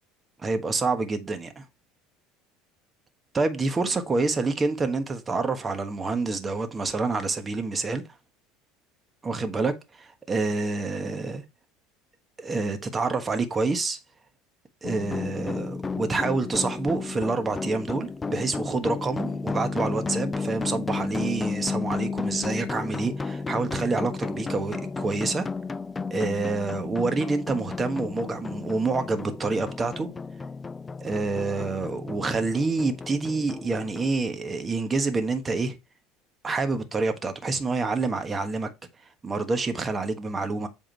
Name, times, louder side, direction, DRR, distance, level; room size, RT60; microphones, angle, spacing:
voice 1, 0.4-1.6 3.3-8.0 9.2-11.4 12.4-14.0 14.8-25.5 26.1-30.1 31.0-35.8 36.4-38.7 39.2-40.7, right 3 dB, 25° right, 1.3 m, -27 dB
sound 1, 14.8-34.1, left 4 dB, 20° left, 0.4 m, -33 dB
8.0 x 3.6 x 4.5 m
supercardioid pair, 105°, 0 cm